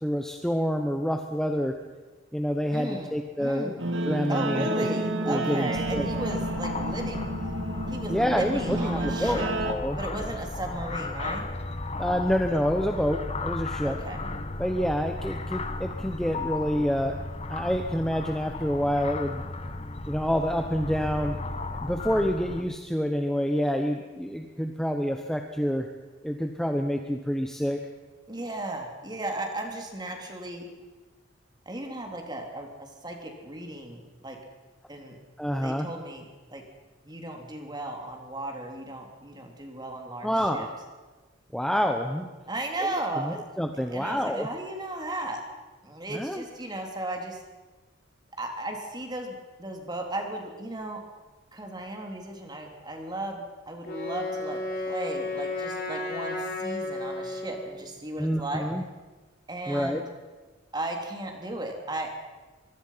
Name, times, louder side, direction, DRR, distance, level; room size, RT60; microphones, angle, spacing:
voice 1, 0.0-1.7 2.3-3.8 4.1-4.7 5.2-6.1 8.1-10.0 12.0-14.0 14.6-17.2 17.5-19.4 20.1-21.4 21.8-25.9 26.2-27.8 35.4-35.9 40.2-40.7 41.5-42.3 42.8-44.5 46.1-46.4 58.2-58.8 59.7-60.0, equal, 5° left, 4 dB, 1.1 m, -27 dB
voice 2, 2.7-3.9 4.3-7.2 7.9-9.5 10.0-11.5 13.8-14.2 28.3-30.7 31.7-34.4 34.9-35.2 35.6-36.2 36.5-36.6 37.0-40.7 42.5-43.4 43.9-45.4 45.8-47.4 48.4-51.0 51.5-58.6 59.5-60.1 60.7-62.2, right 1 dB, 20° right, 2 dB, 3.4 m, -35 dB
Guitar, 3.8-9.7, right 1 dB, 65° right, 2.2 m, -30 dB
sound 1, 5.7-22.6, left 2 dB, 30° left, 1.3 m, -35 dB
Wind instrument woodwind instrument, 53.8-57.8, left 2 dB, 50° left, 4.9 m, -33 dB
24.5 x 23.0 x 5.8 m, 1.3 s
head